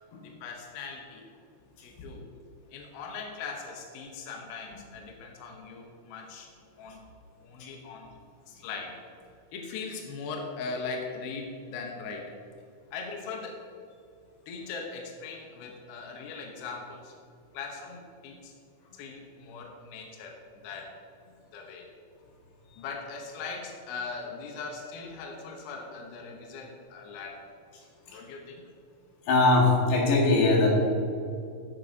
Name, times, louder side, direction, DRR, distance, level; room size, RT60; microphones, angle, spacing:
voice 1, 0.2-1.2 1.8-2.3 2.7-6.5 6.8-7.0 7.4-8.1 8.5-9.0 9.5-12.3 12.9-13.6 14.5-17.1 17.5-18.5 18.9-20.9 21.3-21.9 22.8-27.5 28.1-28.6, left 4 dB, 80° left, 1 dB, 2.2 m, -40 dB
voice 2, 29.3-30.7, left 2 dB, 60° left, -2 dB, 3.1 m, -21 dB
14.5 x 7.5 x 2.7 m, 2.5 s
omnidirectional pair, 5.6 m